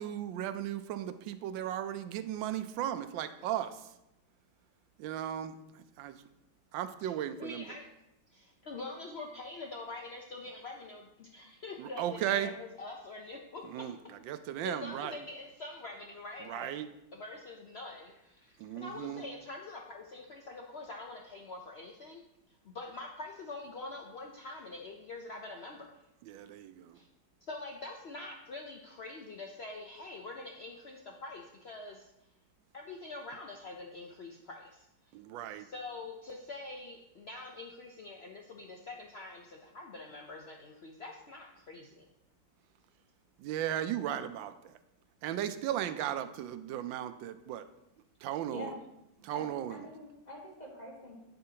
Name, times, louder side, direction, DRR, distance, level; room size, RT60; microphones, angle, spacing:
voice 1, 0.0-3.8 5.0-5.6 6.0-6.2 6.7-7.7 11.8-12.5 13.7-15.2 16.5-16.9 18.6-19.2 26.3-27.0 35.1-35.7 43.4-44.7 45.2-47.6 48.2-48.7 49.2-49.8, right 11 dB, 85° right, 11 dB, 1.3 m, -36 dB
voice 2, 7.4-7.9 8.3-13.9 14.6-16.7 17.1-22.2 22.6-26.0 26.9-27.1 27.5-32.1 32.7-34.9 35.6-42.0, left 2 dB, 85° left, 1 dB, 0.5 m, -45 dB
voice 3, 49.3-51.2, left 1 dB, 25° left, -2 dB, 1.4 m, -46 dB
8.7 x 7.8 x 2.8 m, 0.86 s
omnidirectional pair, 2.0 m